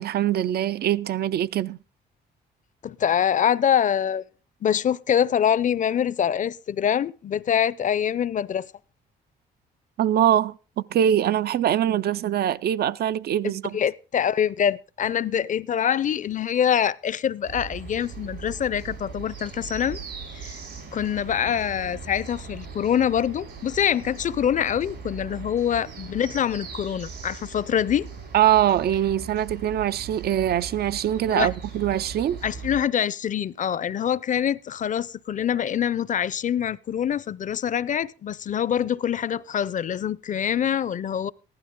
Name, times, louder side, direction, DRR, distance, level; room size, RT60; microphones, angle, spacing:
voice 1, 0.0-1.8 10.0-13.8 28.3-32.4, right 11 dB, 65° right, 0.5 m, -23 dB
voice 2, 2.8-4.2 4.6-8.7 13.4-20.0 20.3-20.5 20.9-28.1 31.3-31.5 32.4-41.3, left 9 dB, 45° left, 0.6 m, -25 dB
sound 1, 17.4-32.8, right 5 dB, 80° right, 6.2 m, -39 dB
15.5 x 11.5 x 3.7 m
cardioid pair, 90°, 18 cm